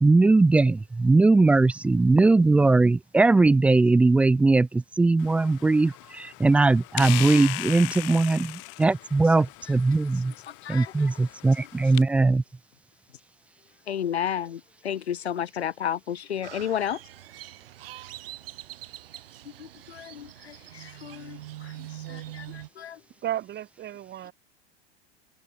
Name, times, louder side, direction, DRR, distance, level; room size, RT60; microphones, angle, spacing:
voice 1, 0.0-10.3 10.7-12.4, right 3 dB, 5° right, 0.3 m, -20 dB
sound 1, 5.2-12.0, left 31 dB, 45° left, 2.2 m, -38 dB
voice 2, 10.1-11.2 11.8-11.9 13.9-17.0 19.6-23.0, left 9 dB, 70° left, 1.6 m, -33 dB
Crow, 16.4-22.7, right 15 dB, 60° right, 2.4 m, -43 dB
voice 3, 22.0-22.4 23.2-24.3, right 12 dB, 30° right, 4.6 m, -34 dB
figure-of-eight pair, 90°, 33 cm